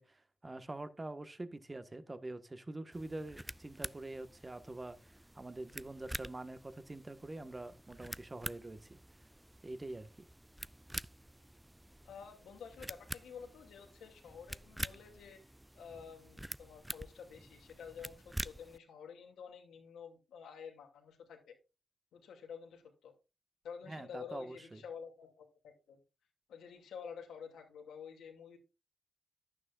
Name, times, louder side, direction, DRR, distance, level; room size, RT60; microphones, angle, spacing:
voice 1, 0.0-9.0 9.6-10.1 23.9-24.8, right 2 dB, 30° right, 1.5 m, -45 dB
sound 1, 2.9-18.8, right 1 dB, 10° right, 0.4 m, -47 dB
voice 2, 12.0-15.4 15.7-21.6 22.1-23.1 23.6-26.0 26.5-28.6, left 6 dB, 85° left, 2.6 m, -50 dB
11.5 x 9.5 x 2.5 m
supercardioid pair, 40°, 0 cm